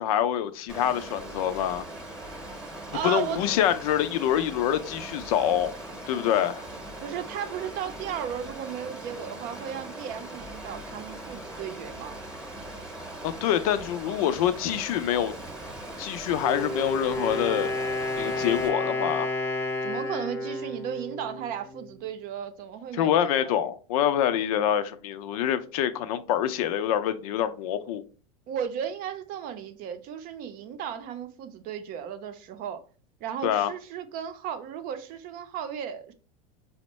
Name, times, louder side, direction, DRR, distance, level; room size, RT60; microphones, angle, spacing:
voice 1, 0.0-1.8 3.0-5.7 6.1-6.7 13.2-15.3 16.0-17.7 18.2-19.3 22.9-28.0 33.4-33.7, left 10 dB, 70° left, 0.4 m, -26 dB
Water, 0.7-18.7, right 1 dB, 5° right, 0.9 m, -40 dB
voice 2, 2.9-3.4 7.0-12.2 19.8-23.6 28.5-32.8 33.2-36.1, right 8 dB, 50° right, 0.5 m, -35 dB
Wind instrument woodwind instrument, 16.3-22.1, left 1 dB, 15° left, 0.5 m, -31 dB
4.3 x 2.1 x 2.9 m
supercardioid pair, 110°, 19 cm